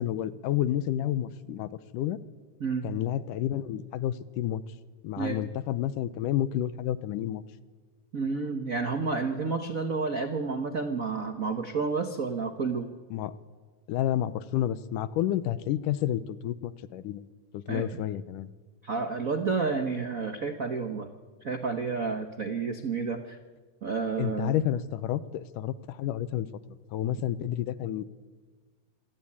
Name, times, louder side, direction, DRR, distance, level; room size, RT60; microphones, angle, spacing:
voice 1, 0.0-2.2 2.8-4.6 5.0-7.4 13.1-13.3 13.9-17.3 17.5-18.5 24.2-26.5 26.9-28.1, left 12 dB, 85° left, 15 dB, 2.4 m, -30 dB
voice 2, 8.1-12.9 17.7-17.8 18.8-21.1 21.4-23.4 23.8-24.5, right 4 dB, 80° right, 7 dB, 0.7 m, -30 dB
26.0 x 18.5 x 8.8 m, 1.4 s
omnidirectional pair, 3.7 m